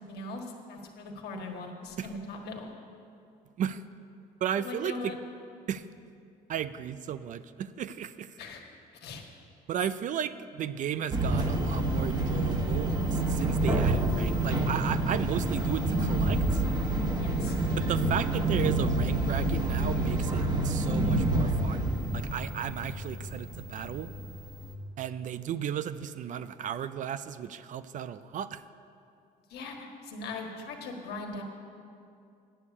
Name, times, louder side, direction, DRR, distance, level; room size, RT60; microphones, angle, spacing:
voice 1, 0.0-2.7 4.6-5.2 8.4-8.6 8.9-9.2 17.2-17.6 29.5-31.4, left 3 dB, 75° left, 2 dB, 1.6 m, -40 dB
voice 2, 4.4-5.1 5.7-5.8 6.5-8.3 9.7-16.6 17.8-24.1 25.0-28.6, right 9 dB, 50° right, 14 dB, 0.4 m, -34 dB
sound 1, 11.1-24.7, right 1 dB, 25° right, 1.1 m, -28 dB
9.1 x 6.8 x 8.4 m, 2.5 s
cardioid pair, 110°, 17 cm